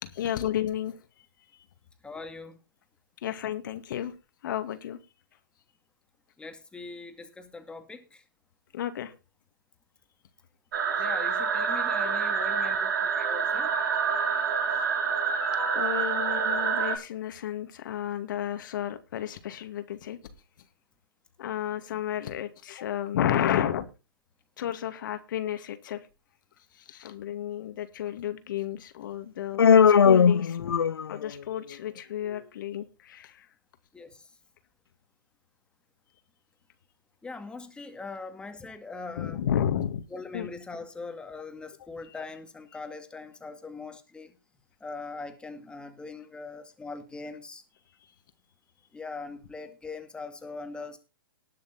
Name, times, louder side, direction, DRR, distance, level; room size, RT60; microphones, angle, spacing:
voice 1, 0.0-1.0 3.2-4.1 4.4-5.0 8.7-9.1 15.8-20.2 21.4-23.9 24.6-26.0 26.8-30.8 31.1-33.5 39.2-40.0 40.3-40.5 42.0-42.1, left 10 dB, 60° left, 2.3 m, -32 dB
voice 2, 2.0-2.6 6.4-8.2 11.0-13.7 15.4-15.8 33.9-34.3 37.2-39.4 40.1-44.3 44.8-47.6 48.9-51.0, left 4 dB, 10° left, 2.1 m, -41 dB
sound 1, 10.7-17.0, right 6 dB, 60° right, 4.1 m, -27 dB
Human voice, 29.6-31.3, left 7 dB, 85° left, 0.7 m, -19 dB
19.5 x 6.6 x 4.3 m
hypercardioid pair, 130°, 12 cm